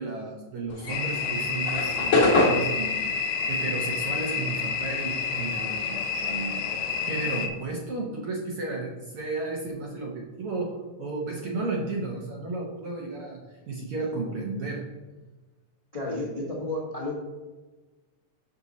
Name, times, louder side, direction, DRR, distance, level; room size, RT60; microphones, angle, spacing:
voice 1, 0.0-6.7 7.0-14.8, right 3 dB, 65° right, -1 dB, 1.5 m, -33 dB
sound 1, 0.7-5.4 5.7-7.7, left 2 dB, 50° left, 1.7 m, -26 dB
sound 2, 0.9-7.5, left 5 dB, 80° left, 2.2 m, -29 dB
voice 2, 15.9-17.1, left 2 dB, 30° left, -5 dB, 0.7 m, -31 dB
6.8 x 6.1 x 4.1 m, 1.2 s
omnidirectional pair, 3.5 m